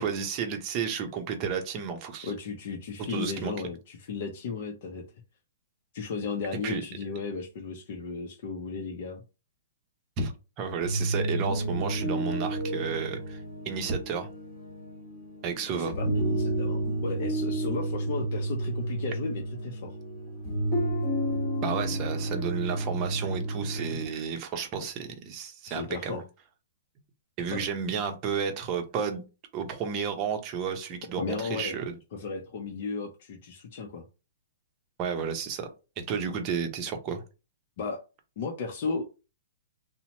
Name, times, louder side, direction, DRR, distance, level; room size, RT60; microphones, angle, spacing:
voice 1, 0.0-2.3 3.1-3.5 6.6-6.8 10.2-10.3 10.6-13.4 13.7-14.3 15.4-15.9 21.6-26.2 27.4-29.2 29.5-32.0 35.0-35.7 36.0-37.2, right 6 dB, 30° right, 0.7 m, -32 dB
voice 2, 2.2-5.0 5.9-9.2 15.7-20.0 25.7-26.2 27.5-27.6 31.2-31.8 32.1-34.0 37.8-38.0 38.4-39.1, left 4 dB, 50° left, 0.6 m, -35 dB
sound 1, 10.7-24.0, right 1 dB, 25° left, 1.3 m, -31 dB
2.8 x 2.1 x 2.9 m
hypercardioid pair, 150°, 0 cm